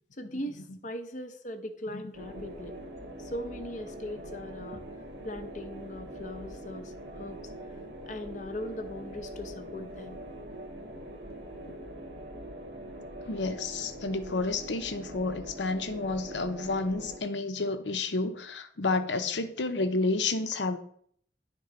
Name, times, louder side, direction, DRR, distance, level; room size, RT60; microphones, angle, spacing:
voice 1, 0.2-2.7 3.2-4.8 5.2-7.4 8.1-10.2, left 1 dB, 45° left, 0.8 m, -39 dB
sound 1, 2.1-17.2, right 1 dB, 65° right, 1.6 m, -43 dB
voice 2, 13.3-20.8, left 3 dB, 85° left, 0.8 m, -30 dB
11.0 x 3.7 x 5.1 m
head